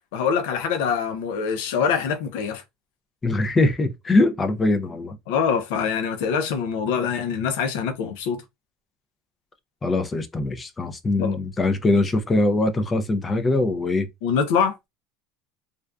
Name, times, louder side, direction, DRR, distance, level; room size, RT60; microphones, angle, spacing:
voice 1, 0.1-2.6 5.3-8.4 11.2-11.4 11.9-12.0 14.2-14.9, left 6 dB, 80° left, 0.5 m, -24 dB
voice 2, 3.2-5.2 9.8-14.1, left 2 dB, 20° left, 0.4 m, -22 dB
2.5 x 2.2 x 2.2 m
supercardioid pair, 120°, 0 cm